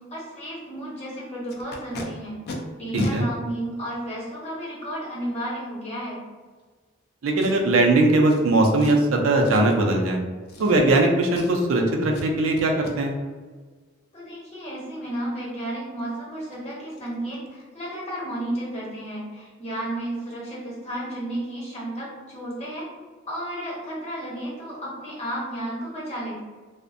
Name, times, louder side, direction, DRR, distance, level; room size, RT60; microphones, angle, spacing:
voice 1, 0.0-2.4 2.8-6.2 14.1-22.9 23.3-26.4, right 1 dB, 35° left, -6 dB, 0.9 m, -33 dB
Packing tape duct tape, 1.5-2.0 2.5-2.6 2.9-3.1 3.9-4.0 7.4-7.8 8.3-8.4 8.8-9.1 9.4-9.8 10.5-11.0 11.3-11.7 12.1-12.3 12.6-12.9 16.0-16.1 16.4-16.6 16.9-17.1 17.3-17.6 17.9-18.0, left 1 dB, 50° left, 0.4 m, -35 dB
voice 2, 2.9-3.3 7.2-10.2 10.6-13.1, right 2 dB, 75° right, 1 dB, 0.4 m, -20 dB
2.5 x 2.1 x 2.5 m, 1.4 s
head